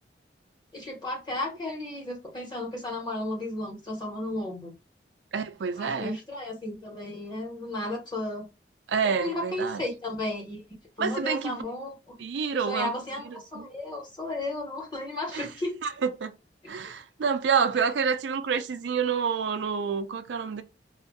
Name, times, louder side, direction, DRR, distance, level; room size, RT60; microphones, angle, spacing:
voice 1, 0.7-4.7 5.7-8.4 9.0-10.6 11.0-12.2 12.5-15.7 17.8-17.9, left 1 dB, 25° left, 1.1 m, -34 dB
voice 2, 5.3-6.2 8.9-9.8 11.0-11.6 12.2-12.9 13.3-13.7 15.3-15.5 15.8-16.3 16.7-20.6, right 6 dB, 85° right, 0.4 m, -28 dB
2.6 x 2.4 x 2.5 m
head